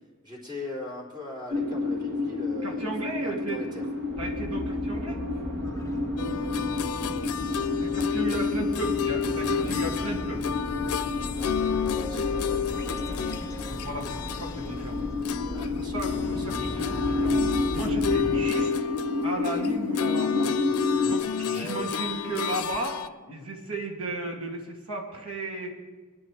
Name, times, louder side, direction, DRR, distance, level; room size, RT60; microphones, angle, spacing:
voice 1, 0.2-2.8 3.2-3.9 7.8-8.2 8.6-8.7 11.3-12.8 15.5-16.0 16.3-16.8 21.5-21.9, left 2 dB, 20° right, -3 dB, 3.4 m, -41 dB
sound 1, 1.5-21.2, left 3 dB, 60° right, 1.4 m, -30 dB
voice 2, 2.6-3.6 4.2-5.2 7.8-10.5 13.6-15.0 15.7-18.7 19.2-20.6 21.0-25.8, right 2 dB, 85° right, 0 dB, 2.4 m, -35 dB
sound 2, 4.1-18.5, left 1 dB, 15° left, 0.8 m, -37 dB
sound 3, 6.2-15.7 16.0-23.1, left 7 dB, 85° left, 0.5 m, -31 dB
22.5 x 10.5 x 3.3 m, 1.3 s
head